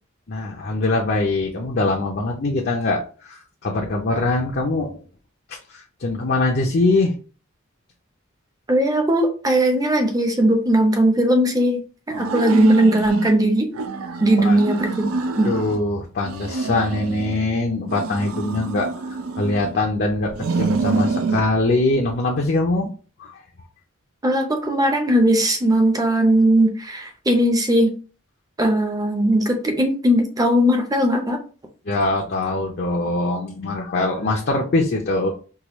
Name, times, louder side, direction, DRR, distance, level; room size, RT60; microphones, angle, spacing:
voice 1, 0.3-5.0 5.5-7.1 14.4-14.6 15.4-18.9 19.4-22.9 23.2-23.4 31.9-35.3, left 2 dB, 50° left, 0 dB, 0.5 m, -22 dB
voice 2, 8.7-13.7 14.2-15.6 24.2-27.9 28.6-31.4, right 1 dB, 15° right, 4 dB, 0.6 m, -18 dB
sound 1, 12.1-13.4 13.7-15.8 16.2-17.5 17.9-19.8 20.3-21.5, right 4 dB, 85° right, 0.5 m, -27 dB
4.7 x 2.4 x 3.0 m, 0.38 s
head